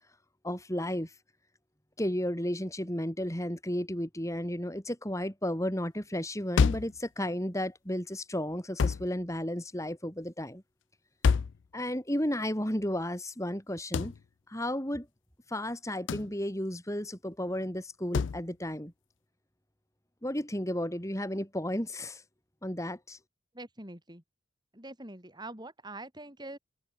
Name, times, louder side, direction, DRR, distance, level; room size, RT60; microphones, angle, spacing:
voice 1, 0.4-1.1 2.0-10.6 11.7-14.1 14.5-15.1 15.5-18.9 20.2-22.2 22.6-23.2, left 1 dB, 15° left, 4.7 m, -33 dB
sound 1, 6.6-7.0 8.8-9.1 11.2-11.6 13.9-14.2 16.1-16.3 18.1-18.4, left 5 dB, 75° left, 0.4 m, -26 dB
voice 2, 23.5-24.2 24.7-26.6, right 2 dB, 20° right, 7.4 m, -44 dB
open air
head